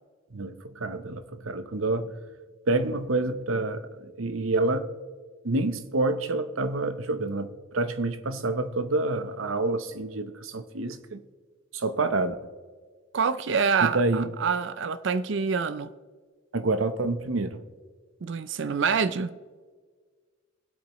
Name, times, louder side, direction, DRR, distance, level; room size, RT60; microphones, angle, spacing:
voice 1, 0.3-2.2 2.7-4.9 5.4-11.2 11.7-12.4 13.8-14.3 16.5-17.6, right 2 dB, 85° right, 0.9 m, -28 dB
voice 2, 13.1-15.9 18.2-19.4, right 5 dB, 60° right, 0.5 m, -26 dB
22.5 x 8.4 x 3.1 m
head